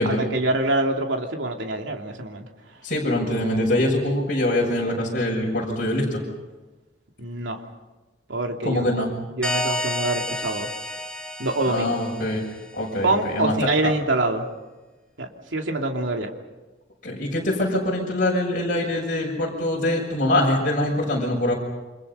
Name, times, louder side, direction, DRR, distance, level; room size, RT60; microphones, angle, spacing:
voice 1, 0.0-2.4 7.2-7.6 8.3-9.1 9.4-10.7 11.4-12.0 13.0-14.5 15.2-16.3, right 2 dB, 75° right, 2 dB, 2.9 m, -25 dB
voice 2, 2.8-6.2 8.6-9.1 11.7-12.4 12.7-13.5 13.8-13.9 17.0-21.5, left 1 dB, 45° left, -3 dB, 6.4 m, -23 dB
sound 1, 9.4-12.8, left 1 dB, 5° left, 1.5 m, -30 dB
29.0 x 26.0 x 5.6 m, 1.2 s
head